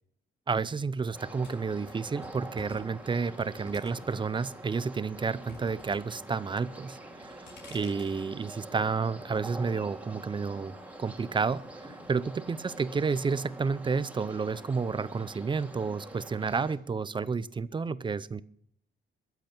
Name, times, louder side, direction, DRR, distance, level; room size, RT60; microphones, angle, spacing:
voice 1, 0.5-7.4 7.7-10.7 11.0-18.4, right 5 dB, 25° right, 17 dB, 0.6 m, -31 dB
sound 1, 1.1-16.8, right 1 dB, 10° right, 2.3 m, -46 dB
sound 2, 1.4-4.3 4.7-6.0 6.2-6.7 7.1-8.2, left 4 dB, 70° left, 5.1 m, -51 dB
22.0 x 8.1 x 6.0 m, 0.68 s
cardioid pair, 135°, 19 cm